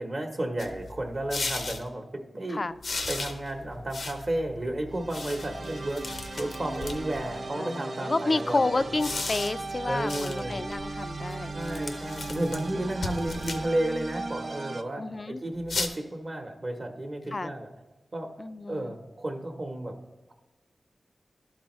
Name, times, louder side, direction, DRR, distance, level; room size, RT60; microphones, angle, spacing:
voice 1, 0.0-2.6 3.1-8.8 9.9-10.6 11.5-17.7 18.1-18.3 18.7-20.0, right 1 dB, 50° right, 3 dB, 0.9 m, -32 dB
sound 1, 0.6-1.8 2.8-7.4 8.8-14.2 15.6-15.9, left 3 dB, 80° left, 0.6 m, -37 dB
sound 2, 4.9-14.8, right 3 dB, 65° right, 0.4 m, -38 dB
voice 2, 7.6-11.5 15.0-15.4 17.3-17.5 18.4-18.9, left 2 dB, 45° left, 13 dB, 0.3 m, -30 dB
12.0 x 4.7 x 3.0 m, 1.1 s
cardioid pair, 60°, 0 cm